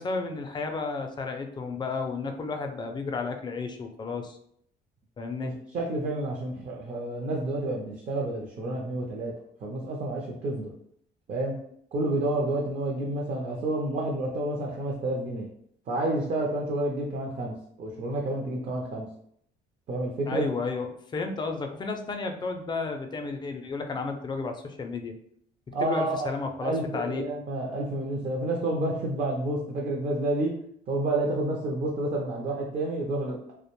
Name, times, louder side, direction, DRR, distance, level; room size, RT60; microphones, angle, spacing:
voice 1, 0.0-4.4 5.2-5.5 20.3-25.1 25.8-27.2, left 4 dB, 25° left, 5 dB, 0.4 m, -32 dB
voice 2, 5.4-9.3 9.6-10.7 11.3-11.6 11.9-15.5 15.9-19.1 19.9-20.5 25.7-26.3 26.6-30.6 30.9-33.5, right 2 dB, 45° right, -2 dB, 0.5 m, -29 dB
2.4 x 2.1 x 3.0 m, 0.67 s
cardioid pair, 110°, 17 cm